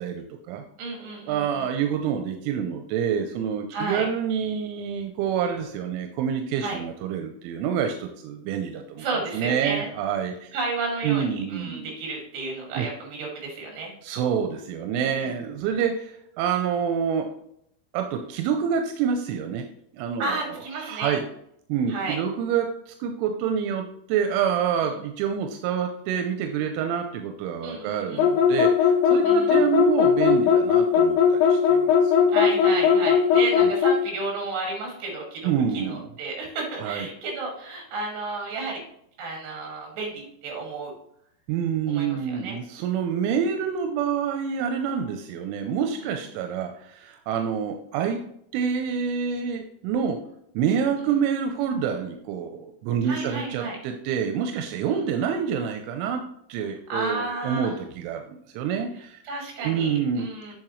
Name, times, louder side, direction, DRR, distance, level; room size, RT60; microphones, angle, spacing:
voice 1, 0.0-0.6 1.3-9.1 9.3-10.5 11.0-11.9 12.8-12.9 14.0-17.3 17.9-19.7 19.9-21.2 21.7-32.1 35.4-36.1 36.8-37.1 41.5-48.2 48.5-50.2 50.5-56.2 56.5-59.2 59.6-60.5, right 7 dB, 90° right, 5 dB, 3.1 m, -27 dB
voice 2, 0.8-1.7 3.7-4.1 6.6-6.8 9.0-9.9 10.5-13.9 15.0-15.3 20.2-21.1 21.9-22.2 24.8-25.0 27.6-28.3 29.2-29.7 32.3-35.5 35.7-38.8 39.2-40.9 41.9-42.6 46.0-46.2 51.0-51.1 53.0-53.8 54.9-55.0 56.7-57.7 59.3-60.5, right 3 dB, 65° right, 0 dB, 4.2 m, -32 dB
sound 1, 28.2-34.0, left 7 dB, 85° left, 2.5 m, -18 dB
8.6 x 6.2 x 3.1 m, 0.72 s
omnidirectional pair, 5.4 m